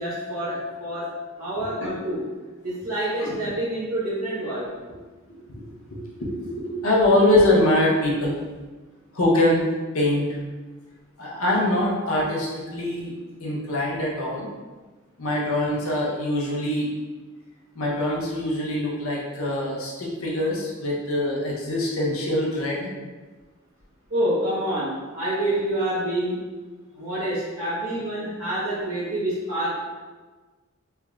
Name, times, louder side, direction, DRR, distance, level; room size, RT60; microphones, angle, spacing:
voice 1, 0.0-2.3 2.6-4.7 24.1-26.4 26.9-29.9, right 1 dB, 70° right, -12 dB, 1.3 m, -27 dB
voice 2, 1.6-1.9 3.2-3.3 5.2-8.4 9.1-10.3 11.2-13.1 13.4-14.5 15.2-16.9 17.7-22.9, left 1 dB, 70° left, -3 dB, 0.8 m, -24 dB
3.5 x 3.3 x 2.4 m, 1.3 s
head